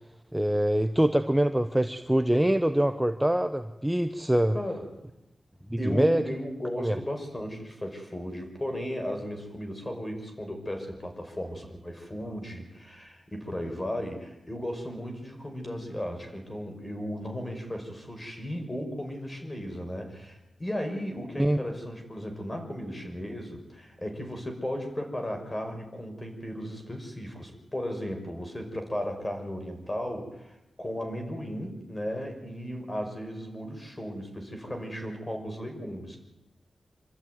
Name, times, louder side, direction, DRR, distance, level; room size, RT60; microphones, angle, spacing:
voice 1, 0.3-4.5 5.7-6.2 6.8-7.0 21.4-21.6, right 1 dB, 5° right, 8 dB, 0.9 m, -24 dB
voice 2, 4.5-4.9 5.8-36.2, equal, 20° left, 4 dB, 5.6 m, -35 dB
26.0 x 13.5 x 9.4 m, 0.95 s
wide cardioid pair, 90°, 0 cm